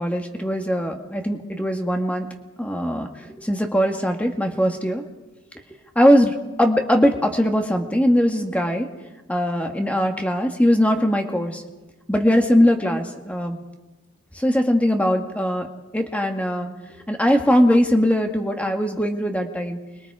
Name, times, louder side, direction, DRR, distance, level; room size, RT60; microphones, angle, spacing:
voice 1, 0.0-2.3 2.6-3.1 3.4-5.0 6.0-8.9 9.3-11.6 12.1-13.6 14.4-15.7 15.9-16.7 17.1-19.8, equal, 5° left, 3 dB, 1.7 m, -20 dB
29.5 x 22.5 x 4.9 m, 1.1 s
head